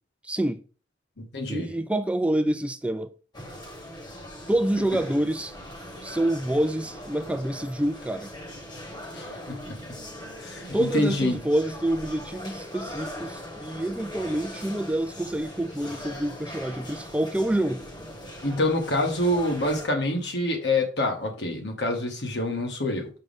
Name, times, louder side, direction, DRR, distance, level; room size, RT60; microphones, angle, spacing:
voice 1, 0.2-0.6 1.5-3.1 4.5-5.5 6.0-8.3 10.7-17.9, right 1 dB, 5° right, 0.4 m, -27 dB
voice 2, 1.2-1.7 9.1-9.8 10.4-11.4 18.4-23.1, left 1 dB, 65° left, 1.9 m, -26 dB
sound 1, 3.3-19.9, left 1 dB, 25° left, 1.4 m, -40 dB
6.5 x 6.5 x 3.6 m
head